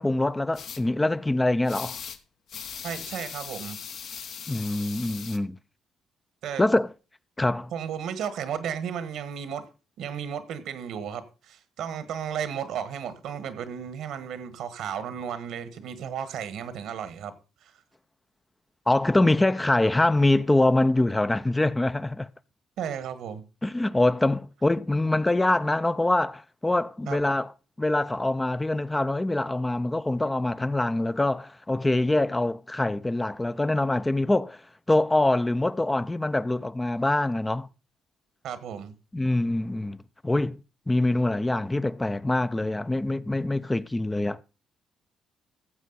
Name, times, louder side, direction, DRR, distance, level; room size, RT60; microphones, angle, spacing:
voice 1, 0.0-2.0 4.5-5.6 6.6-6.9 7.4-7.7 18.9-22.3 23.6-27.5 27.8-34.6 34.9-37.7 39.1-40.0 40.2-40.6 40.9-44.4, left 2 dB, 15° left, 0.4 m, -24 dB
sound 1, 0.5-0.8 1.7-2.2 2.5-5.4, left 7 dB, 65° left, 0.9 m, -39 dB
voice 2, 2.8-3.8 6.4-6.6 7.7-9.6 10.0-17.3 17.6-17.7 22.8-23.4 27.1-27.2 38.4-38.9, right 8 dB, 80° right, 1.4 m, -34 dB
14.5 x 7.3 x 4.0 m
cardioid pair, 90°, 0 cm